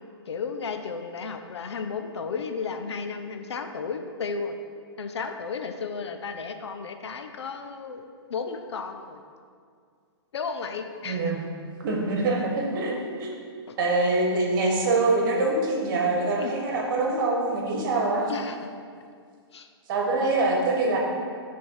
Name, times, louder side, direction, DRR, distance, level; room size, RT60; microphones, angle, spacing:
voice 1, 0.3-4.6 5.0-8.0 8.3-9.2 10.3-11.3 13.7-13.8 16.4-16.5 18.3-18.6 19.5-19.7, left 5 dB, 80° left, 6 dB, 0.6 m, -33 dB
voice 2, 11.0-11.4 11.8-13.5 13.8-18.3 19.9-21.0, right 2 dB, 50° right, 0 dB, 1.4 m, -24 dB
8.5 x 3.6 x 4.6 m, 2.2 s
hypercardioid pair, 135°, 14 cm